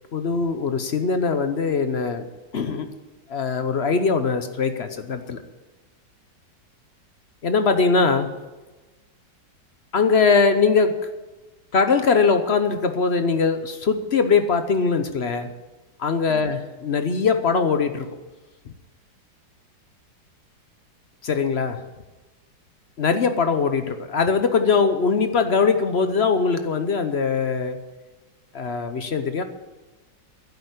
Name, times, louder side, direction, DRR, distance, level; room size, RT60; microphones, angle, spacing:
voice 1, 0.1-2.3 2.5-2.9 3.3-5.4 7.4-8.3 9.9-11.0 11.7-15.5 16.0-18.1 18.7-18.8 21.2-21.8 23.0-27.8 28.5-29.4, left 5 dB, 50° left, 9 dB, 0.8 m, -21 dB
11.0 x 8.8 x 8.3 m, 1.2 s
omnidirectional pair, 2.0 m